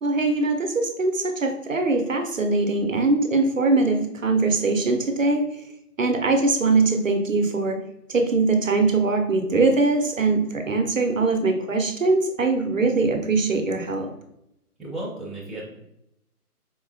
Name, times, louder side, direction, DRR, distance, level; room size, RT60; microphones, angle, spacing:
voice 1, 0.0-5.6 6.0-7.8 8.1-14.1, right 3 dB, 60° right, 4 dB, 0.5 m, -22 dB
voice 2, 14.8-15.8, right 1 dB, ahead, -7 dB, 0.5 m, -34 dB
4.3 x 2.0 x 2.6 m, 0.83 s
hypercardioid pair, 180°, 46 cm